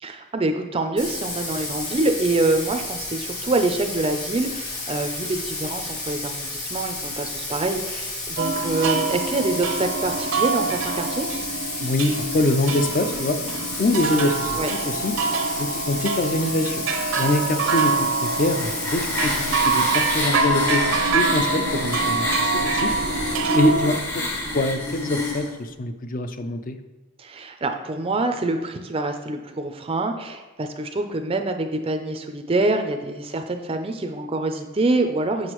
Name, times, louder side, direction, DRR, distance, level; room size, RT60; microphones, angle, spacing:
voice 1, 0.0-11.3 14.6-14.7 24.4-24.6 27.2-35.5, right 2 dB, 25° right, 6 dB, 0.4 m, -25 dB
Bathtub (filling or washing), 1.0-20.2, left 2 dB, 85° left, 2.5 m, -32 dB
sound 1, 8.4-24.0, right 4 dB, 70° right, 0.6 m, -25 dB
voice 2, 11.8-13.4 13.8-15.1 15.6-16.8 17.1-22.9 23.5-24.3 24.5-26.8, left 1 dB, 40° left, 9 dB, 0.4 m, -24 dB
sound 2, 18.0-25.5, left 2 dB, 55° left, 1.4 m, -28 dB
8.0 x 5.9 x 3.0 m, 1.1 s
head